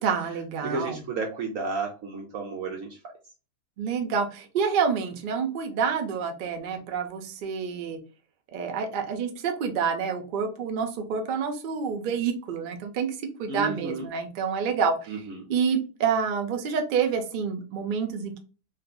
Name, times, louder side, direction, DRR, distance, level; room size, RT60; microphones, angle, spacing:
voice 1, 0.0-1.0 3.8-8.0 8.5-13.1 13.4-15.1 15.5-18.4, right 6 dB, 90° right, 5 dB, 0.4 m, -28 dB
voice 2, 0.6-3.0 13.5-14.1 15.1-15.5, right 4 dB, 70° right, 1 dB, 0.9 m, -32 dB
2.7 x 2.4 x 2.2 m, 0.34 s
omnidirectional pair, 1.6 m